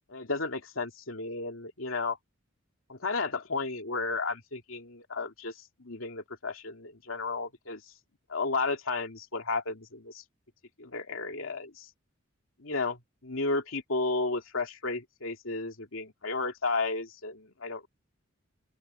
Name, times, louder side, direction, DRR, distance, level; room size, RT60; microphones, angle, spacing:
voice 1, 0.1-2.2 2.9-5.5 5.8-7.8 8.3-10.2 10.8-11.9 12.6-17.9, left 3 dB, 75° left, 2.6 m, -33 dB
open air
head